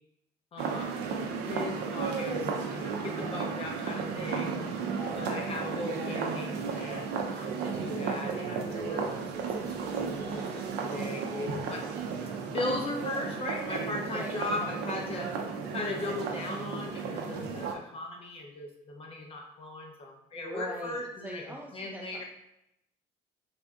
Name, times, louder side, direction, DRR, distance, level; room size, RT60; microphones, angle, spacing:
voice 1, 0.5-1.0 1.4-4.6 5.2-11.9 12.5-15.3 15.7-22.2, left 2 dB, 35° left, 1 dB, 0.6 m, -38 dB
sound 1, 0.6-17.7, right 5 dB, 80° right, 0.4 m, -34 dB
voice 2, 4.8-5.3 14.0-14.3 20.3-22.2, right 1 dB, 10° right, -2 dB, 0.3 m, -41 dB
3.4 x 2.6 x 2.3 m, 0.82 s
cardioid pair, 110°, 17 cm